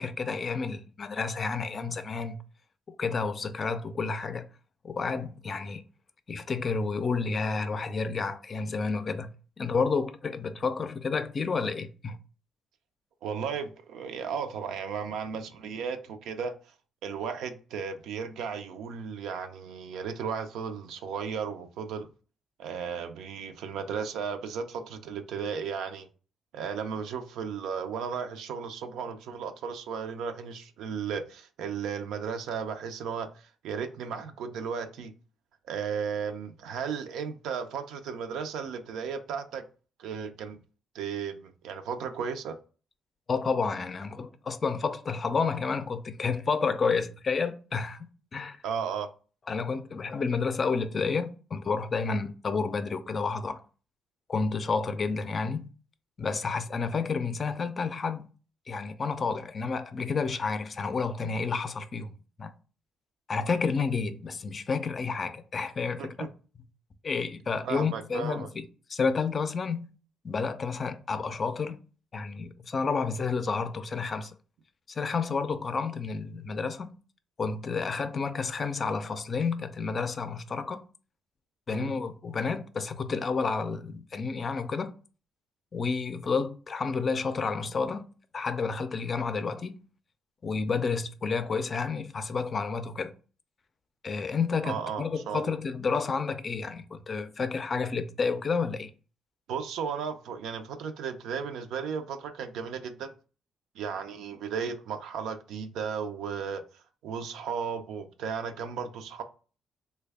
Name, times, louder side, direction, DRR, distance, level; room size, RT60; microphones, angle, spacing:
voice 1, 0.0-2.4 2.9-4.5 4.8-5.8 6.3-12.2 43.3-48.6 49.5-53.6 54.3-55.7 56.2-58.3 58.7-62.1 62.4-62.5 63.3-66.3 67.0-68.6 68.9-69.9 70.2-71.8 72.1-74.3 74.9-76.9 77.4-80.8 81.7-84.9 85.7-88.1 88.3-89.8 90.4-93.1 94.0-98.9, left 4 dB, 40° left, 0.4 m, -30 dB
voice 2, 13.2-16.6 17.0-22.1 22.6-26.1 26.5-35.1 35.7-39.6 40.0-40.6 40.9-42.6 48.6-49.1 66.0-66.3 67.6-68.5 81.7-82.0 94.6-95.5 99.5-103.1 103.8-109.2, right 6 dB, 85° right, 0.4 m, -35 dB
3.3 x 2.2 x 3.4 m
cardioid pair, 90°, 0 cm